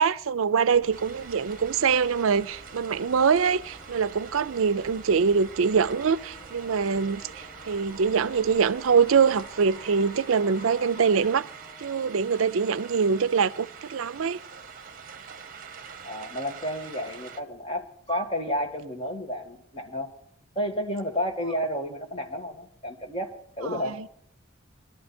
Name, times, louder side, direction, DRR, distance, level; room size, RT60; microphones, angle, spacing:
voice 1, 0.0-7.2 7.7-11.5 11.8-14.4 23.7-24.1, right 6 dB, 75° right, 0.5 m, -24 dB
sound 1, 0.7-11.3, equal, 50° left, 5.9 m, -48 dB
sound 2, 0.9-17.4, right 6 dB, 40° right, 0.9 m, -45 dB
Musical instrument, 5.6-14.1, right 1 dB, 5° right, 2.7 m, -53 dB
voice 2, 16.0-20.1 20.6-24.0, equal, 25° left, 2.0 m, -31 dB
19.0 x 12.5 x 4.3 m
head